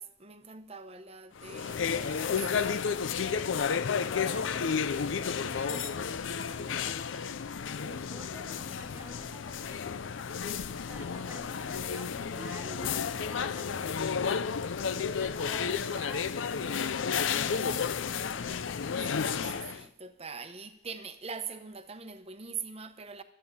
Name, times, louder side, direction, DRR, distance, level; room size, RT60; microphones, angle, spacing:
voice 1, 0.0-3.8 4.1-4.5 5.7-5.8 12.3-13.0 18.9-23.2, right 5 dB, 35° right, 0.9 m, -43 dB
sound 1, 1.4-19.8, left 6 dB, 85° left, 0.5 m, -32 dB
voice 2, 4.1-7.4 7.8-10.0 10.9-14.4 14.8-18.7, equal, 10° right, 1.5 m, -51 dB
13.0 x 8.4 x 8.5 m
head